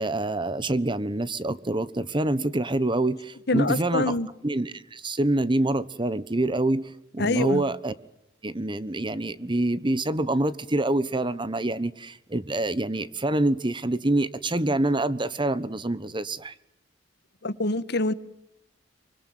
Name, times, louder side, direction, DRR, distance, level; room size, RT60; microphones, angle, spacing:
voice 1, 0.0-4.2 4.4-7.9 8.4-16.5, right 2 dB, 25° right, 1.2 m, -26 dB
voice 2, 3.5-4.3 7.2-7.6 17.4-18.1, left 2 dB, 65° left, 1.4 m, -25 dB
24.5 x 24.5 x 9.3 m
head